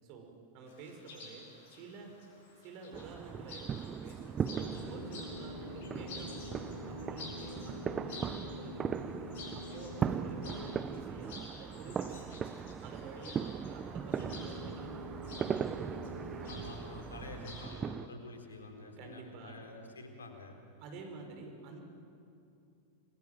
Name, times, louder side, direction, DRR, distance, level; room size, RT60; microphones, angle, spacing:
voice 1, 0.0-2.1 2.6-4.6 4.9-9.1 9.5-16.0 16.4-16.5 19.0-19.6 20.8-21.8, right 3 dB, 45° right, 3 dB, 5.5 m, -49 dB
Chirp tweet, 0.7-17.8, left 3 dB, 55° left, 7.7 m, -52 dB
sound 1, 2.9-18.1, right 7 dB, 25° right, 0.9 m, -39 dB
sound 2, 4.5-11.3 14.0-16.7, left 2 dB, 85° right, 3.1 m, -46 dB
voice 2, 16.5-20.6, left 2 dB, 70° left, 4 dB, 4.1 m, -48 dB
29.0 x 22.5 x 9.2 m, 2.6 s
figure-of-eight pair, 90°, 0 cm